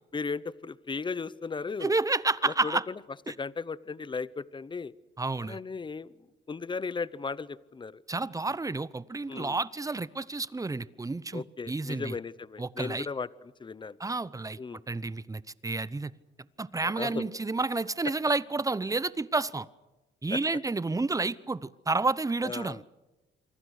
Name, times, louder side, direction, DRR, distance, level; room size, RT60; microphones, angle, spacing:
voice 1, 0.1-1.9 2.4-2.8 3.4-4.9 5.4-6.1 6.5-7.9 9.3-9.6 11.3-13.3 13.6-14.0 14.6-14.8 16.8-17.3 20.3-20.4 22.4-22.8, left 4 dB, 25° left, 19 dB, 0.8 m, -36 dB
voice 2, 1.8-2.8 3.3-3.4 5.2-5.6 8.1-12.2 12.6-13.1 14.0-14.6 14.9-16.1 16.6-19.7 20.2-22.9, right 3 dB, 15° right, 18 dB, 0.8 m, -30 dB
27.0 x 23.5 x 6.5 m, 1.1 s
cardioid pair, 90°, 20 cm